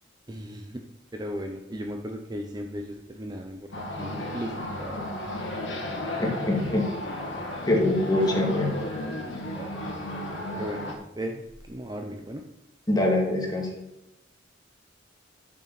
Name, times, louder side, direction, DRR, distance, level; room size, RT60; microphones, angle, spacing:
voice 1, 0.3-0.8 1.1-5.1 8.3-8.7 9.6-9.7 10.5-11.4 11.7-12.4, equal, 20° right, 4 dB, 0.8 m, -36 dB
sound 1, 3.7-10.9, left 1 dB, 80° left, 2.4 m, -33 dB
voice 2, 6.2-6.9 7.7-8.7 12.9-13.7, left 1 dB, 20° left, -1 dB, 2.6 m, -24 dB
12.5 x 7.5 x 4.2 m, 0.94 s
head